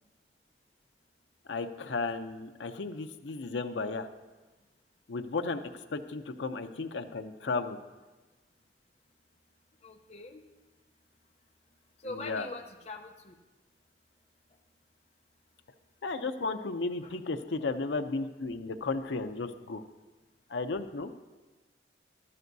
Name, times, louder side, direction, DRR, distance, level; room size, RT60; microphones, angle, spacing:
voice 1, 1.5-4.1 5.1-5.6 5.9-7.8 12.0-12.5 16.0-19.8 20.5-21.1, left 3 dB, 80° left, 7 dB, 0.6 m, -34 dB
voice 2, 9.8-10.4 12.0-13.4, left 2 dB, 35° left, 2 dB, 0.7 m, -43 dB
14.0 x 12.5 x 2.7 m, 1.2 s
head